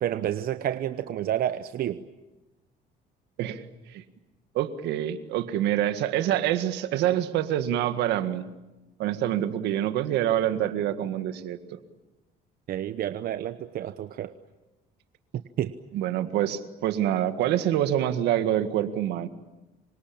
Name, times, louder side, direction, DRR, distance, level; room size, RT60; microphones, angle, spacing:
voice 1, 0.0-2.0 12.7-14.3 15.3-15.7, right 11 dB, 60° right, 11 dB, 1.0 m, -30 dB
voice 2, 4.6-8.5 9.0-11.8 15.9-19.3, right 11 dB, 85° right, 10 dB, 1.8 m, -26 dB
27.5 x 24.5 x 8.7 m, 1.1 s
cardioid pair, 110°, 17 cm